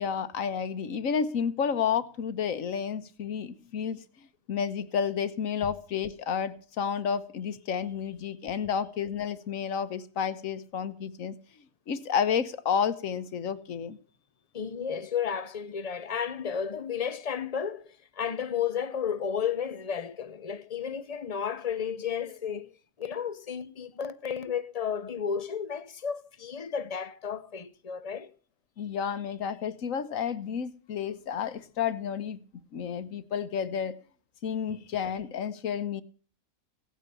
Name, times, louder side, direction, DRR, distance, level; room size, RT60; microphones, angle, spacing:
voice 1, 0.0-4.0 4.5-11.3 11.9-14.0 28.8-32.4 32.7-34.0 34.4-36.0, left 7 dB, 85° left, 1.4 m, -31 dB
voice 2, 14.5-22.7 23.0-28.3 34.7-34.8, left 7 dB, 35° left, 0.8 m, -33 dB
17.0 x 9.1 x 6.9 m
omnidirectional pair, 1.3 m